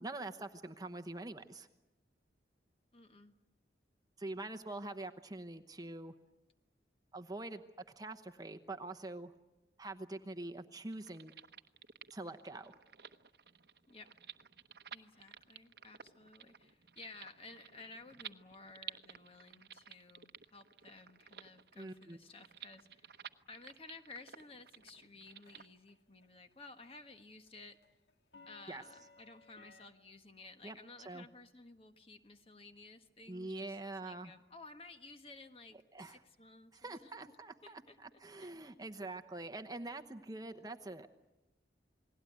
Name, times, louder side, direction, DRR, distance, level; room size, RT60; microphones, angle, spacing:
voice 1, 0.0-1.7 4.2-6.1 7.1-7.6 8.0-9.3 9.8-11.3 12.1-12.7 21.8-22.2 28.7-28.8 30.6-30.8 31.0-31.3 33.3-34.3 35.9-36.2 36.7-41.1, right 2 dB, 20° right, 7 dB, 0.9 m, -45 dB
voice 2, 2.9-3.3 13.9-14.1 14.9-27.8 28.5-37.1 37.6-38.0 38.4-38.5, left 3 dB, 30° left, 7 dB, 1.5 m, -55 dB
sound 1, 10.9-25.7, right 9 dB, 60° right, 1.0 m, -54 dB
sound 2, 25.0-25.9 26.2-26.5 26.8-29.9, left 3 dB, 70° left, 1.8 m, -60 dB
29.5 x 20.0 x 9.4 m, 1.0 s
head